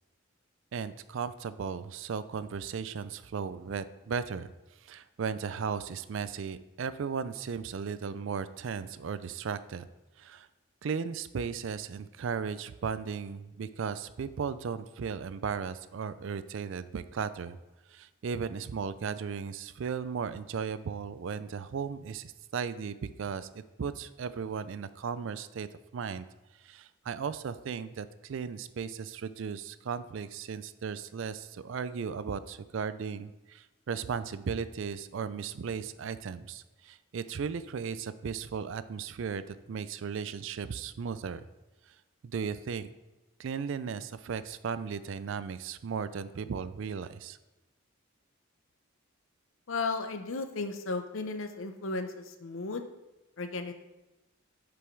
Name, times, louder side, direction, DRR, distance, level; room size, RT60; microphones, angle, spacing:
voice 1, 0.7-4.5 4.8-9.9 10.2-10.5 10.8-17.6 17.9-25.7 25.9-26.3 26.6-41.4 42.2-42.9 43.4-47.4, right 6 dB, 65° right, 14 dB, 0.4 m, -36 dB
voice 2, 49.7-52.8 53.4-53.7, left 3 dB, 70° left, 7 dB, 0.7 m, -34 dB
6.8 x 5.2 x 4.5 m, 1.0 s
head